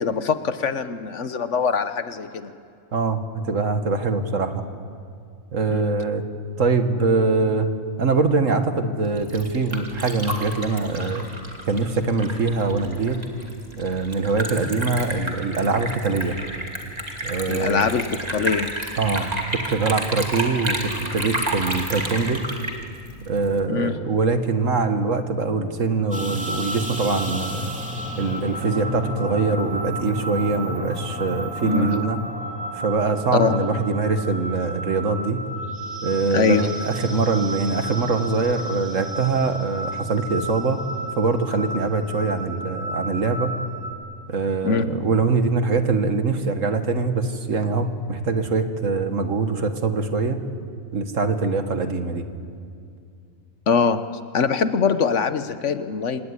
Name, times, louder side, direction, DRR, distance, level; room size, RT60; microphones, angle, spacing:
voice 1, 0.0-2.5 5.7-5.8 17.5-18.7 23.7-23.9 31.6-32.0 33.3-33.6 36.3-36.7 44.6-44.8 53.7-54.0 54.3-56.2, left 5 dB, 60° left, 11 dB, 1.2 m, -22 dB
voice 2, 2.9-4.6 5.5-6.2 6.6-7.7 8.0-11.3 11.6-13.2 13.8-16.4 17.2-17.9 19.0-19.3 19.7-22.4 23.3-27.7 28.2-32.2 32.7-35.4 36.0-40.8 41.2-43.6 44.3-50.4 50.9-52.2, right 4 dB, 65° right, 7 dB, 1.9 m, -23 dB
Liquid, 9.0-23.6, right 1 dB, 30° right, 2.8 m, -31 dB
sound 1, 26.1-43.9, right 1 dB, 5° right, 2.9 m, -32 dB
26.0 x 18.0 x 9.7 m, 2.4 s
omnidirectional pair, 1.5 m